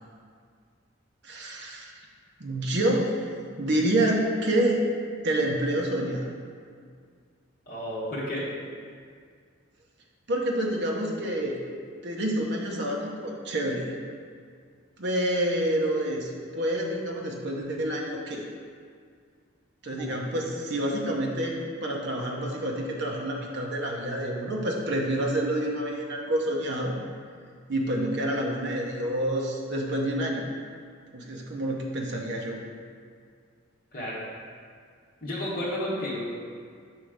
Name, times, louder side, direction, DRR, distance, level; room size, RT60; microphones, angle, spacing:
voice 1, 1.2-1.9 2.4-3.1 3.6-4.8 5.2-6.2 10.3-11.6 12.0-13.9 15.0-18.4 19.8-21.5 21.8-26.9 27.7-30.5 31.1-32.6, right 1 dB, 55° right, -1 dB, 0.7 m, -28 dB
voice 2, 7.7-8.5 19.9-20.2 31.6-31.8 33.9-34.2 35.2-36.3, left 1 dB, 45° left, -8 dB, 1.1 m, -32 dB
6.3 x 3.1 x 4.9 m, 2.1 s
head